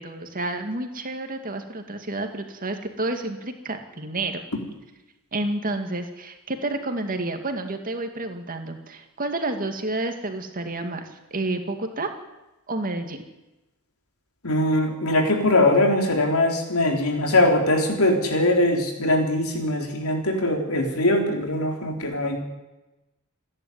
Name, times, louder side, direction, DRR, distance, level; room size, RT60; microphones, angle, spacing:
voice 1, 0.0-4.4 5.3-12.1 12.7-13.2, right 2 dB, 40° right, 6 dB, 2.4 m, -30 dB
voice 2, 14.4-22.4, left 1 dB, 75° left, 3 dB, 4.3 m, -21 dB
27.5 x 11.0 x 9.6 m, 1.0 s
head